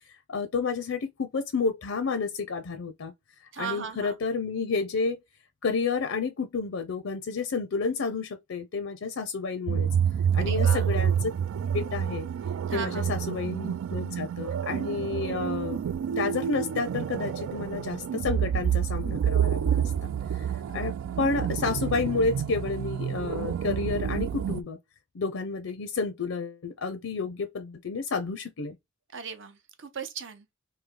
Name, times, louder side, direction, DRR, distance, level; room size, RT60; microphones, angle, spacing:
voice 1, 0.3-3.1 3.6-5.2 5.6-9.9 10.3-11.3 11.7-12.3 12.7-15.8 16.2-20.5 20.7-24.8 25.1-28.8, left 4 dB, 75° left, 0.5 m, -30 dB
voice 2, 3.5-4.1 10.3-10.9 12.7-13.1 29.1-30.5, right 6 dB, 65° right, 0.7 m, -37 dB
sound 1, 9.7-24.6, right 8 dB, 85° right, 0.3 m, -28 dB
3.2 x 2.7 x 3.6 m
head